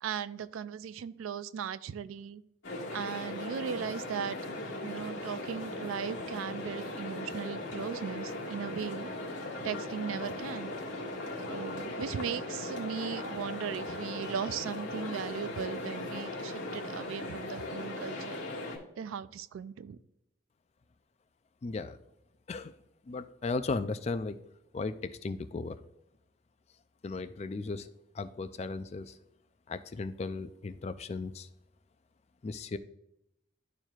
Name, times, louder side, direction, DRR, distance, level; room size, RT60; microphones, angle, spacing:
voice 1, 0.0-2.4 2.9-4.4 4.8-9.1 9.6-10.7 11.5-18.4 19.0-20.0, right 7 dB, 90° right, 15 dB, 0.3 m, -38 dB
sound 1, 2.6-18.8, left 2 dB, 90° left, 1.7 m, -38 dB
voice 2, 21.6-22.0 22.5-22.7 23.1-24.4 24.7-25.8 27.0-27.9 28.1-29.2 29.7-31.5 32.4-32.8, left 3 dB, 30° left, 11 dB, 0.3 m, -36 dB
11.5 x 4.5 x 2.4 m, 0.83 s
head